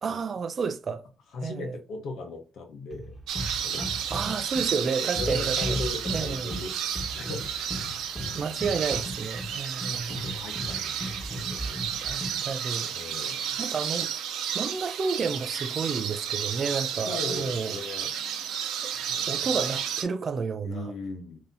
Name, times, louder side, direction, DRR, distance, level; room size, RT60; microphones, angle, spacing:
voice 1, 0.0-1.1 1.4-1.8 4.1-5.6 6.1-6.5 8.3-10.2 12.0-12.9 13.6-14.1 14.5-17.8 18.8-18.9 19.3-20.9, right 5 dB, 45° right, 0.4 m, -31 dB
voice 2, 1.3-3.1 3.6-4.0 5.0-6.7 7.1-7.4 8.2-8.5 8.9-9.0 9.5-9.6 9.9-11.8 12.1-12.5 12.9-13.4 16.7-18.1 18.9-19.6 20.6-21.4, left 3 dB, 75° left, 1.0 m, -38 dB
sound 1, 2.9-12.5, equal, 5° left, 1.4 m, -37 dB
sound 2, 3.3-20.0, right 9 dB, 85° right, 0.8 m, -32 dB
5.3 x 2.8 x 2.6 m
cardioid pair, 90°, 0 cm